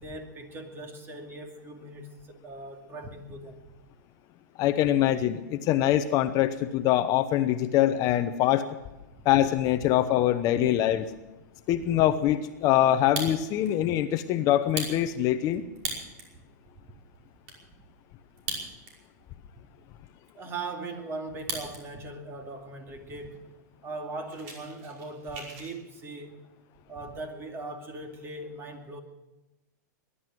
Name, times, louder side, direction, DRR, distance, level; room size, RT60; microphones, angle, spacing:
voice 1, 0.0-3.6 9.1-9.3 10.5-10.7 20.3-23.5 23.8-26.4 26.9-29.0, right 2 dB, 25° right, 5 dB, 2.4 m, -40 dB
voice 2, 4.6-8.6 9.2-11.1 11.7-15.7, left 12 dB, 40° left, 10 dB, 0.9 m, -24 dB
Fire, 12.9-13.7 14.1-14.2 14.6-16.3 16.8-16.9 17.1-17.6 18.3-19.1 19.4-19.5 20.1-21.8 22.1-22.6 23.2-23.3 23.5-23.7 24.0-25.7, right 3 dB, 55° right, 5.4 m, -38 dB
20.0 x 11.5 x 6.3 m, 1.0 s
hypercardioid pair, 130°, 10 cm